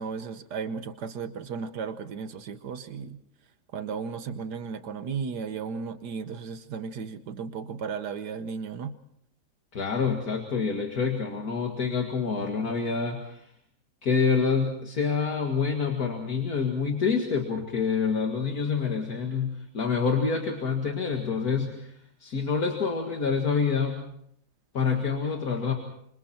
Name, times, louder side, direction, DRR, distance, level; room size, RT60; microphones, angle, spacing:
voice 1, 0.0-3.2 3.7-8.9, right 6 dB, 85° right, 10 dB, 1.6 m, -35 dB
voice 2, 9.7-13.5 14.0-21.9 22.2-24.0 24.7-25.7, left 5 dB, 65° left, 2 dB, 2.5 m, -27 dB
27.5 x 26.0 x 4.4 m, 0.72 s
omnidirectional pair, 1.7 m